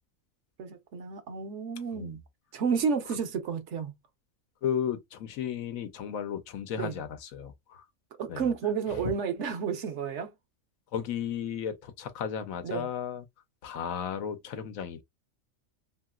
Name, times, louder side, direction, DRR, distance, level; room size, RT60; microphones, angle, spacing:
voice 1, 0.6-2.2 2.5-3.9 6.8-7.0 8.2-10.3 12.6-12.9, right 6 dB, 65° right, 1.0 m, -31 dB
voice 2, 4.6-7.8 8.3-8.4 8.9-9.0 10.9-13.2 13.6-15.0, left 8 dB, 85° left, 1.1 m, -34 dB
2.9 x 2.8 x 2.3 m
omnidirectional pair, 1.4 m